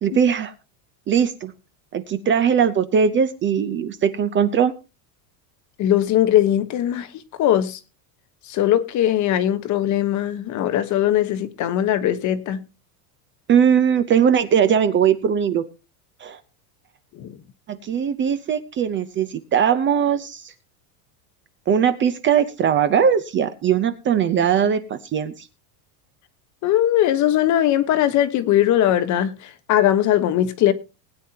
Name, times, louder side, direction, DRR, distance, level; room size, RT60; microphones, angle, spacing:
voice 1, 0.0-0.5 1.1-1.5 1.9-4.7 13.5-15.6 16.2-16.4 17.7-20.5 21.7-25.5, right 8 dB, 25° right, 0.6 m, -20 dB
voice 2, 5.8-7.1 7.4-7.8 8.5-12.6 17.1-17.4 26.6-30.7, left 11 dB, 35° left, 1.1 m, -20 dB
20.0 x 9.3 x 2.8 m
supercardioid pair, 155°, 48 cm